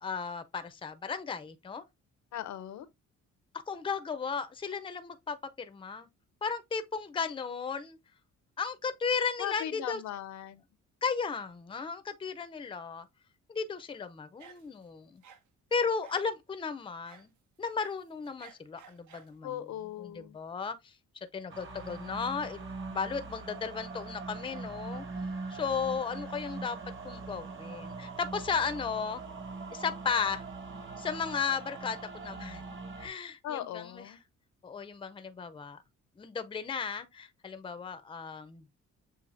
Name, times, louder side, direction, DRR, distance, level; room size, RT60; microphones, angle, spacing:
voice 1, 0.0-1.8 3.7-6.1 6.4-8.0 8.6-10.0 11.0-13.1 13.5-15.2 15.7-17.3 17.6-19.5 20.0-20.9 21.3-22.6 22.9-25.0 25.5-26.8 27.0-29.2 29.7-30.4 31.0-34.0 34.6-35.8 36.2-38.6, left 5 dB, 15° left, 0.5 m, -35 dB
voice 2, 2.3-2.9 9.4-10.6 19.4-20.4 33.4-34.2, left 11 dB, 70° left, 0.6 m, -38 dB
sound 1, 14.4-14.9 15.2-15.4 16.0-16.3 17.1-17.3 17.6-19.4, right 7 dB, 70° right, 0.9 m, -55 dB
sound 2, 21.5-33.1, right 3 dB, 40° right, 1.3 m, -42 dB
7.1 x 2.7 x 2.5 m
cardioid pair, 90°, 30 cm